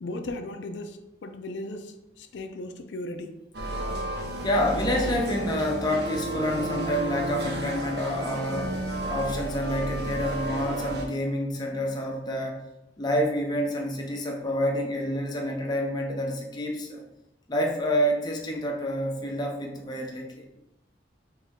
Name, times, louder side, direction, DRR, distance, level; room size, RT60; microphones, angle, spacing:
voice 1, 0.0-3.3, left 1 dB, 80° left, 0.4 m, -37 dB
sound 1, 3.5-11.1, right 1 dB, 60° right, 0.7 m, -32 dB
voice 2, 4.4-12.6 13.0-17.0 17.5-20.5, equal, 25° left, 0.6 m, -28 dB
3.6 x 3.1 x 3.5 m
head